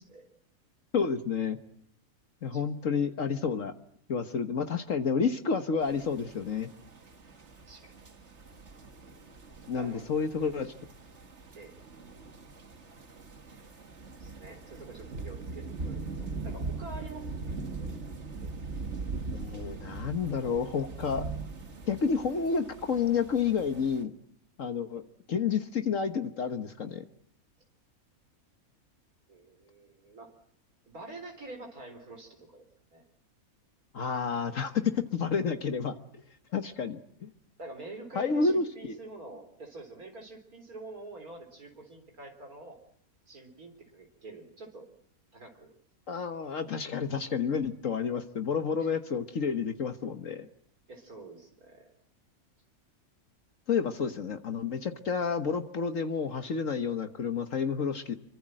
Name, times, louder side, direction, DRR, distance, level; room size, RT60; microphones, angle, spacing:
voice 1, 0.9-1.6 2.4-3.7 4.1-6.7 9.7-10.7 19.3-21.3 21.9-24.1 24.6-25.0 25.3-27.0 33.9-36.0 36.5-37.3 38.1-39.0 46.1-50.5 53.7-58.1, left 5 dB, 60° left, 8 dB, 1.6 m, -30 dB
sound 1, 5.8-24.0, right 3 dB, 50° right, 2.0 m, -41 dB
voice 2, 14.2-17.4 17.8-18.1 18.4-18.8 29.3-30.3 30.9-32.7 32.9-33.0 37.6-42.8 43.3-44.9 45.3-45.7 48.8-48.9 50.9-51.9, right 2 dB, 80° right, 3 dB, 4.3 m, -47 dB
26.5 x 24.0 x 7.6 m, 0.67 s
omnidirectional pair, 1.5 m